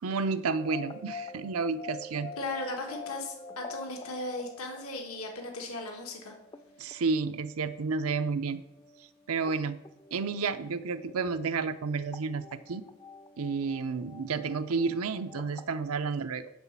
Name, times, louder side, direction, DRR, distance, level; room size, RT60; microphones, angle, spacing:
voice 1, 0.0-2.3 6.8-8.6 9.3-9.8 10.1-12.8 13.4-16.5, right 4 dB, 85° right, 10 dB, 0.6 m, -31 dB
sound 1, 0.6-15.7, left 4 dB, 20° left, 0.4 m, -48 dB
voice 2, 2.4-6.4, left 2 dB, 90° left, 1 dB, 1.5 m, -37 dB
11.0 x 4.1 x 7.4 m, 0.91 s
head